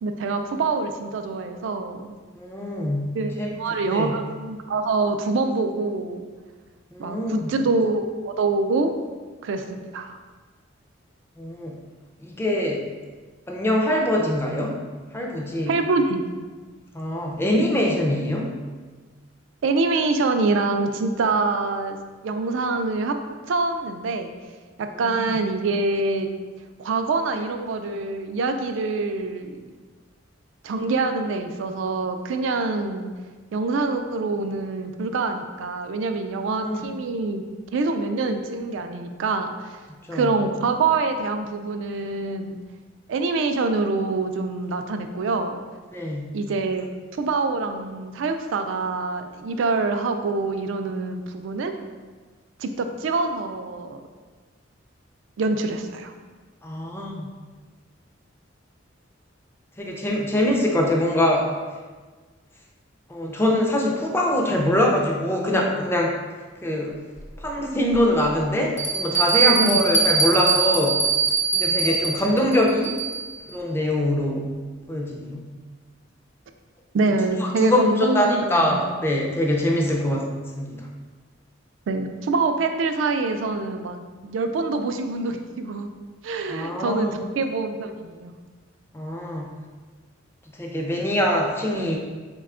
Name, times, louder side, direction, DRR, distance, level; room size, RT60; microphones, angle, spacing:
voice 1, 0.0-2.2 3.1-3.3 3.6-6.3 7.0-8.9 9.4-10.2 15.7-16.3 19.6-22.0 22.2-23.2 23.5-24.3 24.8-26.3 26.8-29.7 30.6-33.1 33.5-37.4 37.7-39.8 40.1-42.6 43.1-45.6 46.3-46.9 47.2-51.7 52.6-54.0 55.4-56.1 69.4-69.8 76.9-78.9 81.9-85.9 86.2-88.3, right 3 dB, 70° right, 6 dB, 0.3 m, -25 dB
voice 2, 2.3-3.1 3.4-3.5 3.8-4.1 6.9-7.5 11.4-11.8 12.2-12.8 13.5-14.8 15.1-15.7 16.9-18.5 25.0-25.3 36.6-36.9 40.1-40.3 45.9-46.3 56.6-57.3 59.8-61.5 63.1-66.1 66.6-66.9 67.4-71.0 71.5-72.9 73.5-74.5 74.9-75.5 77.4-80.3 80.6-80.9 86.5-87.2 88.9-89.5 90.6-92.0, left 1 dB, 10° left, -1 dB, 0.4 m, -23 dB
Bell, 67.2-67.3 67.9-68.0 68.8-73.3, right 5 dB, 35° left, 0.8 m, -22 dB
4.1 x 2.2 x 3.6 m, 1.4 s
head